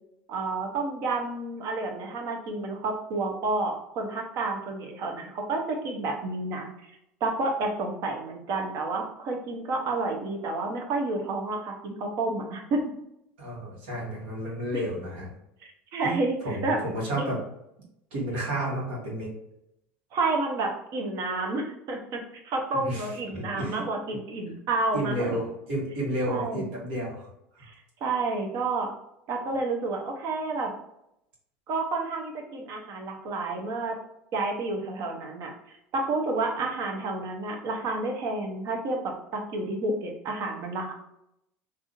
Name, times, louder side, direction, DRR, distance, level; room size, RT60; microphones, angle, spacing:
voice 1, 0.3-6.9 7.2-12.8 14.7-14.8 15.6-16.4 16.6-16.8 17.2-17.3 20.1-25.4 26.3-26.7 27.6-27.7 28.0-28.9 29.3-30.7 31.7-34.0 34.3-35.5 35.9-39.0 39.3-40.9, right 3 dB, 55° right, 2 dB, 0.9 m, -30 dB
voice 2, 13.4-15.3 16.0-17.4 18.1-19.3 22.7-23.8 24.9-27.7, right 1 dB, 80° right, -3 dB, 1.5 m, -32 dB
3.5 x 2.7 x 2.6 m, 0.81 s
hypercardioid pair, 85°, 6 cm